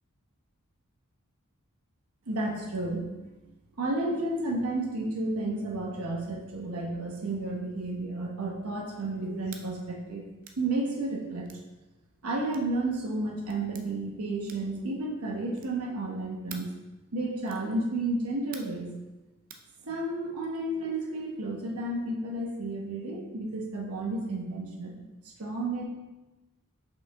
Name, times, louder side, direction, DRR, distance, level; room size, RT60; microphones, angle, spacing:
voice 1, 2.3-3.1 3.8-10.2 10.5-11.5 12.2-16.7 17.1-18.9 19.8-25.0 25.4-25.8, right 2 dB, 90° right, -1 dB, 1.0 m, -32 dB
sound 1, 9.5-9.7 10.4-10.6 11.4-11.7 12.5-12.7 13.5-13.9 14.4-14.8 15.5-15.8 16.5-16.8 17.4-17.7 18.5-18.8 19.5-19.7, right 6 dB, 40° right, 0.5 m, -47 dB
5.7 x 5.0 x 3.7 m, 1.1 s
head